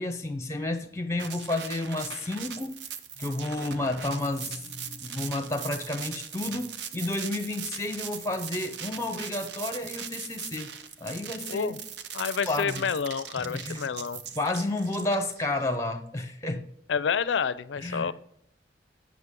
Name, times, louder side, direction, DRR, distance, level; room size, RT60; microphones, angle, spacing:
voice 1, 0.0-2.7 3.2-10.7 11.0-11.7 12.4-12.9 13.4-13.9 14.3-16.7 17.8-18.1, left 2 dB, 15° left, 0.7 m, -31 dB
sound 1, 1.2-15.7, right 8 dB, 70° right, 0.6 m, -40 dB
voice 2, 12.1-14.2 16.9-18.1, left 6 dB, 85° left, 0.4 m, -29 dB
8.1 x 6.2 x 3.6 m
head